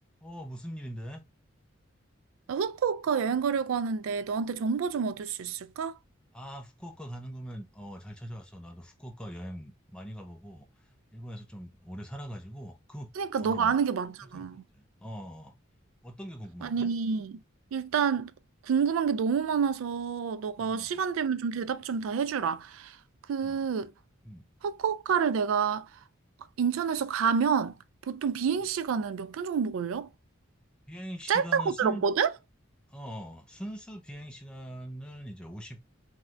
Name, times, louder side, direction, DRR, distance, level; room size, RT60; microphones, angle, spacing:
voice 1, 0.2-1.2 6.3-13.1 13.4-13.8 14.3-15.5 16.0-16.9 20.6-21.0 23.4-23.6 24.2-24.5 30.9-32.0 32.9-35.8, equal, 5° left, 0.5 m, -42 dB
voice 2, 2.5-5.9 13.2-14.6 16.6-17.4 17.7-18.3 18.6-23.0 23.3-23.9 24.6-25.9 26.6-27.8 28.1-30.1 31.3-32.3, right 6 dB, 80° right, 0.3 m, -28 dB
3.1 x 2.7 x 2.4 m
head